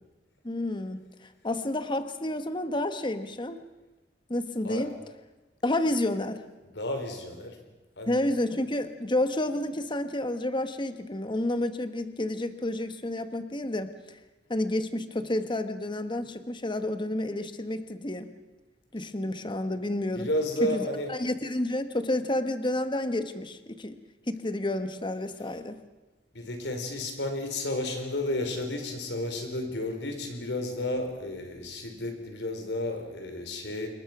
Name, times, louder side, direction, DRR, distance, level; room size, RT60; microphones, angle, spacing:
voice 1, 0.4-1.0 1.4-3.6 4.3-4.9 5.6-6.4 8.1-14.2 14.5-18.3 18.9-20.3 20.6-24.0 24.3-25.8, left 1 dB, 30° left, 9 dB, 1.3 m, -30 dB
voice 2, 6.6-7.6 8.0-8.2 20.1-21.2 26.3-33.9, left 1 dB, 90° left, 5 dB, 4.6 m, -32 dB
27.0 x 22.0 x 6.1 m, 1.1 s
head